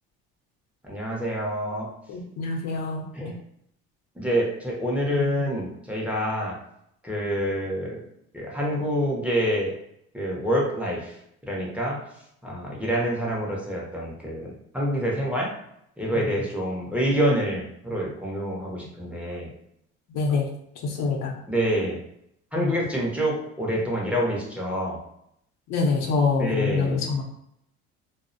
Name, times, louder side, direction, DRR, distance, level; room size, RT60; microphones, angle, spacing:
voice 1, 0.8-1.9 3.1-3.3 4.2-6.6 7.0-8.0 8.3-9.7 10.1-11.2 11.5-12.0 12.4-15.5 16.0-19.5 21.5-22.0 22.5-25.0 26.4-27.0, equal, 5° right, -4 dB, 0.6 m, -27 dB
voice 2, 2.1-3.4 5.1-5.5 16.1-16.4 20.1-20.5 20.8-21.3 22.6-22.8 25.7-27.2, left 4 dB, 65° left, 1 dB, 0.7 m, -26 dB
2.3 x 2.1 x 2.5 m, 0.75 s
supercardioid pair, 100°, 29 cm